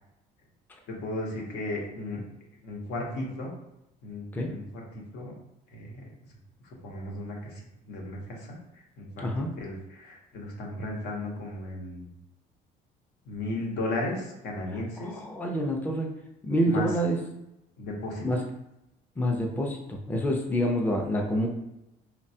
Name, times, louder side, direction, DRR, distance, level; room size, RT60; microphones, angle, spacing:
voice 1, 0.9-2.2 2.6-3.5 4.0-4.8 5.1-5.3 5.7-6.0 6.8-7.6 7.9-8.6 9.0-9.3 9.6-12.1 13.3-15.1 16.6-16.9 17.8-18.2, left 1 dB, 80° left, -1 dB, 0.8 m, -35 dB
voice 2, 15.0-16.1 16.4-17.2 18.2-18.4 19.2-21.5, equal, 10° left, 1 dB, 0.4 m, -27 dB
3.2 x 2.2 x 2.7 m, 0.90 s
cardioid pair, 110°, 17 cm